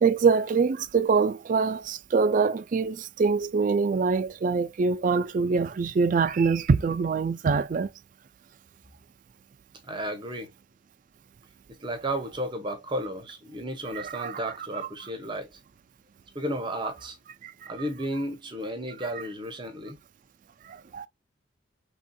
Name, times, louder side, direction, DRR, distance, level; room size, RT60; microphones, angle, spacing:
voice 1, 0.0-7.9 13.9-14.9 17.4-17.7 19.1-19.2 20.7-21.1, right 5 dB, 40° right, 0.3 m, -24 dB
voice 2, 9.9-10.5 11.8-15.5 16.3-17.2 17.7-20.0, right 1 dB, 25° right, 0.7 m, -33 dB
3.4 x 2.7 x 2.2 m
head